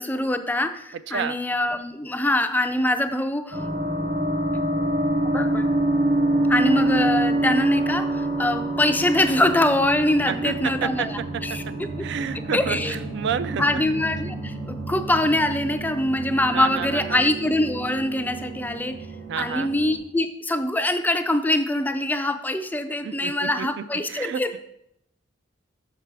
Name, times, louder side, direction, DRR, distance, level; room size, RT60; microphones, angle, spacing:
voice 1, 0.0-3.6 5.3-5.7 6.5-12.2 12.5-13.0 13.6-19.0 19.4-24.6, left 1 dB, 10° left, 9 dB, 0.4 m, -24 dB
sound 1, 3.5-20.0, right 1 dB, 85° right, 3.4 m, -27 dB
voice 2, 10.3-11.2 11.5-11.6 12.0-13.8 16.5-17.2 19.3-19.7 23.0-24.6, right 7 dB, 60° right, 14 dB, 0.3 m, -30 dB
6.7 x 6.0 x 4.6 m, 0.77 s
head